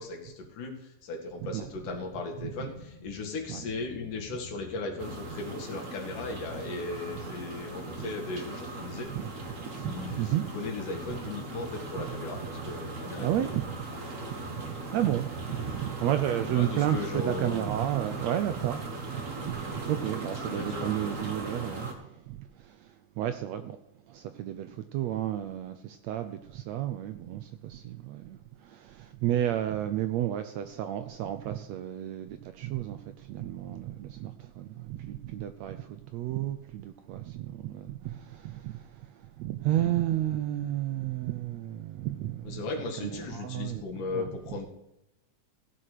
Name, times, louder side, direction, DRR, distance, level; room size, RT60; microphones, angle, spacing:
voice 1, 0.0-9.1 9.8-13.6 16.4-17.7 20.5-21.0 42.5-44.7, left 3 dB, 75° left, 3.5 m, -37 dB
sound 1, 2.4-21.9, left 5 dB, 55° left, 2.7 m, -50 dB
voice 2, 2.4-2.7 3.5-3.6 7.9-8.1 9.1-10.5 11.1-11.2 12.0-12.1 12.6-12.7 13.2-13.8 14.5-23.8 24.1-42.6 43.0-44.4, right 12 dB, 75° right, 1.6 m, -32 dB
sound 2, 5.0-21.9, right 3 dB, 35° right, 1.5 m, -39 dB
16.0 x 5.8 x 6.6 m
omnidirectional pair, 3.6 m